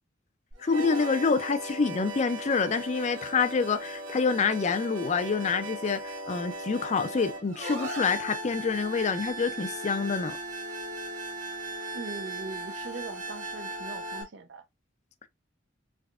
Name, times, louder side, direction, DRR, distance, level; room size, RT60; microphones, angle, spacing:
sound 1, 0.5-14.2, right 1 dB, 85° right, 1.6 m, -37 dB
voice 1, 0.6-10.4, left 5 dB, 40° left, 0.4 m, -27 dB
voice 2, 11.9-14.6, right 3 dB, 70° right, 0.6 m, -41 dB
3.5 x 3.2 x 2.3 m
head